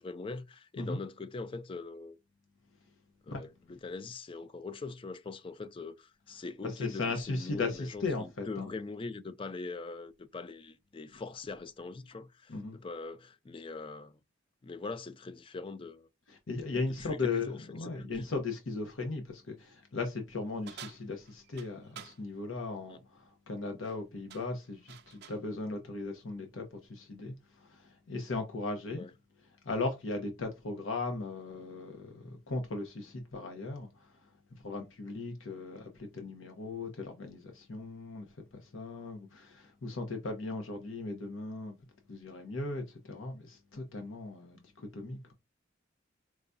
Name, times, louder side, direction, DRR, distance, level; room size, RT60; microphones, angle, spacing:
voice 1, 0.0-2.2 3.3-14.2 14.6-16.1 17.0-18.2 22.9-23.0 28.9-29.1, left 3 dB, 25° left, 0.3 m, -42 dB
voice 2, 6.6-8.7 12.5-12.8 16.3-29.0 29.6-34.1 34.6-38.3 38.5-41.7 42.1-45.3, left 3 dB, 85° left, 0.7 m, -37 dB
sound 1, 20.7-22.2 23.7-24.0 24.3-25.5, right 9 dB, 55° right, 0.5 m, -50 dB
4.7 x 2.2 x 2.5 m
head